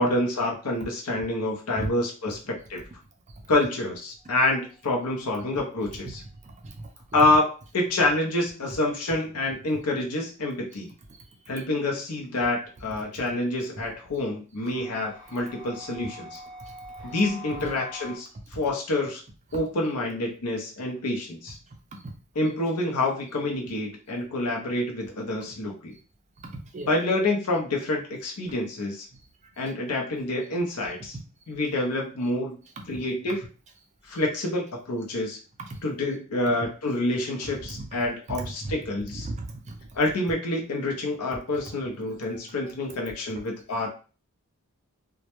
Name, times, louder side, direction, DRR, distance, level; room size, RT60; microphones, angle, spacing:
voice 1, 0.0-2.8 3.5-6.2 7.1-10.9 11.5-16.4 17.0-19.2 19.5-21.6 22.4-25.9 26.9-29.1 29.6-31.2 31.5-32.6 32.9-33.4 34.0-35.4 35.8-39.3 39.9-43.9, left 2 dB, 85° left, 0 dB, 0.7 m, -27 dB
sound 1, 4.2-5.0 14.6-18.2, left 1 dB, 10° right, 0.8 m, -44 dB
voice 2, 6.4-7.4 11.2-11.3 16.6-16.7 17.5-17.7 22.0-22.1 26.4-26.9 28.5-28.6 32.8-33.0 35.7-35.8 37.7-37.9 38.3-38.7 39.1-39.9, right 2 dB, 30° right, 4 dB, 0.4 m, -36 dB
2.2 x 2.1 x 2.9 m, 0.36 s
head